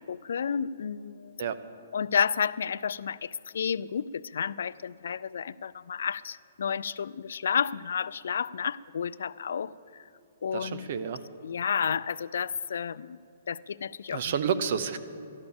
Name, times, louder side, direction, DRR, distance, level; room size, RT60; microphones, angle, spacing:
voice 1, 0.0-1.4 1.9-10.0 10.4-10.9 11.4-13.2 13.5-14.2, left 7 dB, 75° left, 17 dB, 0.3 m, -31 dB
voice 2, 10.5-11.2 14.1-15.0, right 7 dB, 45° right, 12 dB, 0.7 m, -30 dB
13.0 x 11.5 x 7.1 m, 2.6 s
hypercardioid pair, 165°, 0 cm